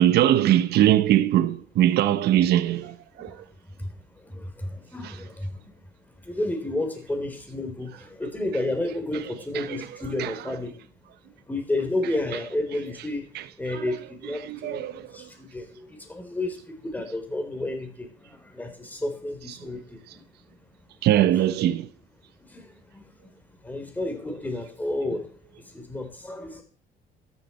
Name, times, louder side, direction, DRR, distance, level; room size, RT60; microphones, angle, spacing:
voice 1, 0.0-3.4 5.0-5.2 8.5-8.7 9.5-10.6 12.0-12.5 13.0-13.1 13.3-15.1 19.5-19.6 21.0-21.9, right 12 dB, 75° right, 1.1 m, -23 dB
voice 2, 4.1-5.6 6.2-10.8 11.5-13.3 13.6-20.2 22.5-23.3 23.6-25.3 25.7-26.6, left 1 dB, 10° left, 3.7 m, -31 dB
13.5 x 10.5 x 4.4 m
cardioid pair, 110°, 17 cm